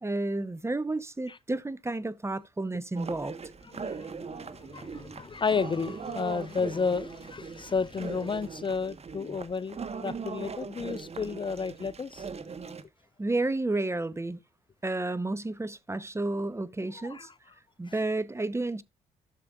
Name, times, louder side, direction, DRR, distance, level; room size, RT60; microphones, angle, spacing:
voice 1, 0.0-3.4 13.2-14.4 14.8-17.3 17.8-18.8, right 2 dB, 15° right, 0.8 m, -31 dB
sound 1, 2.9-12.8, right 5 dB, 40° right, 1.3 m, -40 dB
voice 2, 4.6-12.3 17.0-17.3 17.9-18.0, left 5 dB, 30° left, 0.5 m, -32 dB
13.0 x 6.8 x 2.4 m
supercardioid pair, 55°, 16 cm